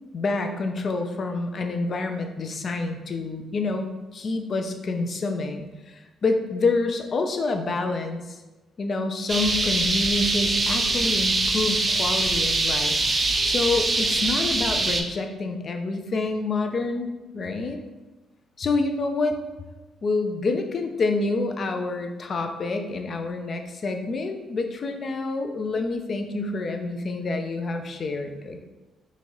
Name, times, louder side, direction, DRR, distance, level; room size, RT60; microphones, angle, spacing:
voice 1, 0.1-8.4 8.8-13.0 13.4-17.8 18.6-19.4 20.0-28.6, left 3 dB, 45° left, 5 dB, 0.4 m, -27 dB
sound 1, 9.3-15.0, right 2 dB, 30° right, 0.4 m, -23 dB
3.7 x 2.6 x 3.1 m, 1.1 s
cardioid pair, 90°, 0 cm